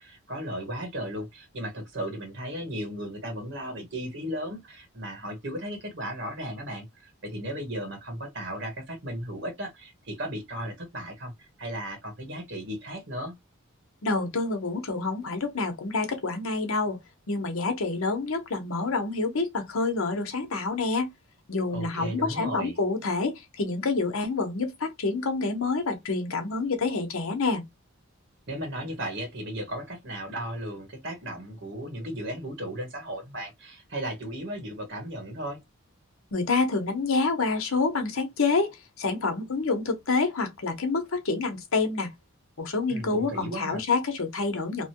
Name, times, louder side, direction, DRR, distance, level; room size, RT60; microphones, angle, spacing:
voice 1, 0.0-13.3 21.7-22.8 28.5-35.6 42.9-43.8, equal, 55° right, 1.1 m, -35 dB
voice 2, 14.0-17.0 17.3-21.1 21.5-27.6 36.3-42.1 42.6-44.9, left 3 dB, 75° left, 0.8 m, -27 dB
2.9 x 2.2 x 2.8 m
head